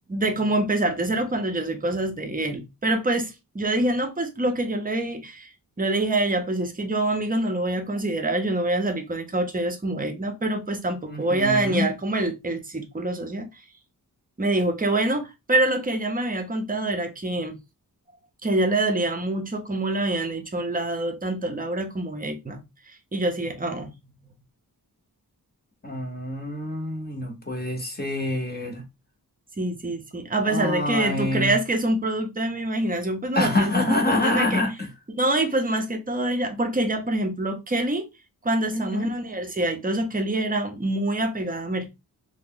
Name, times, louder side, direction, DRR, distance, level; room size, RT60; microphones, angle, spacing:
voice 1, 0.1-5.5 5.8-13.5 14.4-17.6 18.4-22.6 22.9-23.9 29.6-34.6 35.2-38.1 38.4-41.9, right 2 dB, 25° right, 0.7 m, -25 dB
voice 2, 11.1-11.9 25.8-28.8 30.4-31.5 33.3-34.9 38.7-39.1, left 2 dB, 25° left, 0.8 m, -26 dB
3.0 x 2.1 x 3.6 m
wide cardioid pair, 130°, 37 cm